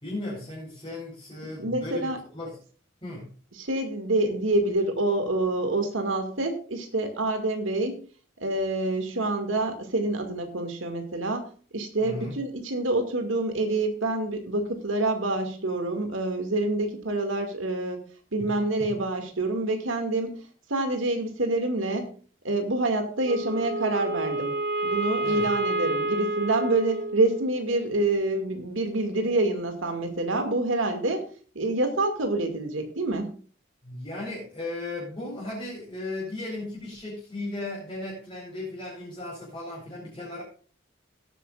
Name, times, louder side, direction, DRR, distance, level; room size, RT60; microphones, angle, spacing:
voice 1, 0.0-2.5 3.0-3.3 12.0-12.4 18.4-18.5 18.8-18.9 25.2-25.5 33.8-40.4, left 2 dB, 25° left, -5 dB, 4.5 m, -36 dB
voice 2, 1.4-2.2 3.5-8.0 8.4-18.0 18.3-22.2 22.4-24.5 24.8-31.3 31.5-33.3, right 2 dB, 90° right, 5 dB, 2.3 m, -27 dB
Wind instrument woodwind instrument, 23.2-27.6, right 2 dB, 55° right, 2.2 m, -29 dB
17.5 x 9.3 x 2.5 m, 0.41 s
head